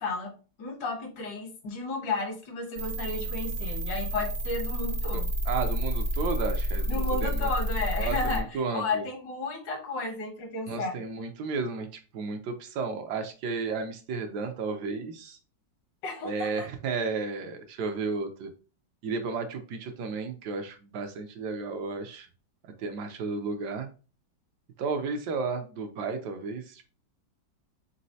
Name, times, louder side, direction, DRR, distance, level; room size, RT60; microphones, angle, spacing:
voice 1, 0.0-5.3 6.9-8.4 8.7-11.0 16.0-16.7, left 3 dB, 75° left, 5 dB, 1.6 m, -33 dB
sound 1, 2.8-8.4, equal, 55° right, 0.8 m, -30 dB
voice 2, 5.1-7.5 8.0-9.0 10.7-15.4 16.2-18.5 19.0-22.3 22.8-23.9 24.8-26.8, right 4 dB, 70° right, 6 dB, 1.1 m, -33 dB
4.1 x 3.8 x 2.7 m, 0.35 s
omnidirectional pair, 2.0 m